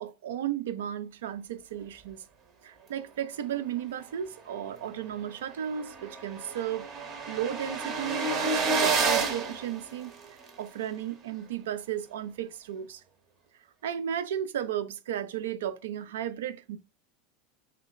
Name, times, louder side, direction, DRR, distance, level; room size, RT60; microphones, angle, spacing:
voice 1, 0.0-2.2 2.6-6.9 7.3-10.1 10.6-13.0 13.8-16.8, right 10 dB, 70° right, 0.3 m, -34 dB
sound 1, 4.9-5.0 5.4-5.5 5.6-10.5, right 4 dB, 45° right, 0.8 m, -30 dB
3.2 x 2.9 x 2.2 m
figure-of-eight pair, 80°, 0 cm